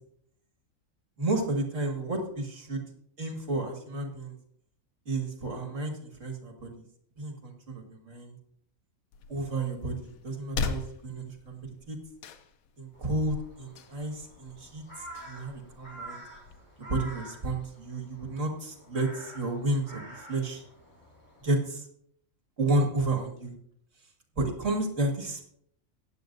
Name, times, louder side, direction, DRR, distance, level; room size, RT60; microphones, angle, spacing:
voice 1, 1.2-2.8 3.2-4.4 5.1-6.7 7.2-8.4 9.3-12.0 12.8-16.2 16.8-20.6 21.4-21.9 22.6-23.5 24.4-25.4, right 2 dB, 60° right, 3 dB, 2.3 m, -31 dB
sound 1, 9.1-16.6, left 5 dB, 80° left, 1.2 m, -40 dB
Crow, 12.9-21.4, right 1 dB, 20° left, 4.7 m, -48 dB
15.0 x 9.9 x 2.6 m, 0.66 s
omnidirectional pair, 1.4 m